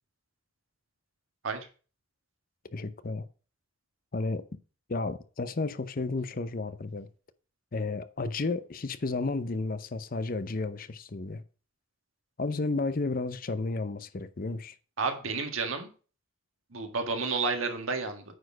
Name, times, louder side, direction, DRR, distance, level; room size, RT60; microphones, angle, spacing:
voice 1, 2.7-3.3 4.1-4.4 4.9-7.1 7.7-11.4 12.4-14.7, left 3 dB, 45° left, 0.6 m, -32 dB
voice 2, 15.0-15.9 16.7-18.2, right 4 dB, 80° right, 1.7 m, -31 dB
9.4 x 4.4 x 6.0 m
head